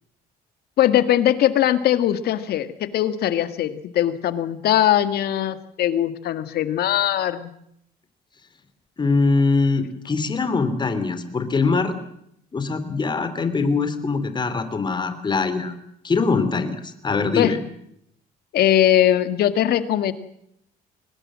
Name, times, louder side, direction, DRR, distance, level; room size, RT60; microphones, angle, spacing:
voice 1, 0.8-7.5 17.3-17.5 18.5-20.1, left 11 dB, 70° left, 11 dB, 1.9 m, -20 dB
voice 2, 9.0-11.9 12.5-15.7 16.0-17.6, left 4 dB, 25° left, 10 dB, 3.2 m, -22 dB
23.0 x 20.0 x 7.6 m, 0.73 s
cardioid pair, 110°, 17 cm